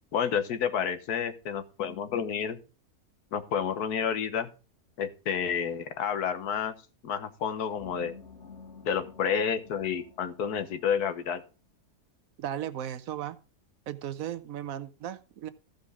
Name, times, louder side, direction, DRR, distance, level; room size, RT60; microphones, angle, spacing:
voice 1, 0.1-2.6 3.3-4.5 5.0-6.7 7.0-8.1 8.8-11.4, left 7 dB, 90° left, 11 dB, 1.5 m, -30 dB
sound 1, 7.8-11.3, left 5 dB, 50° left, 1.7 m, -51 dB
voice 2, 12.4-13.4 13.9-15.5, right 11 dB, 70° right, 14 dB, 1.1 m, -36 dB
14.5 x 5.2 x 4.8 m, 0.33 s
omnidirectional pair, 1.6 m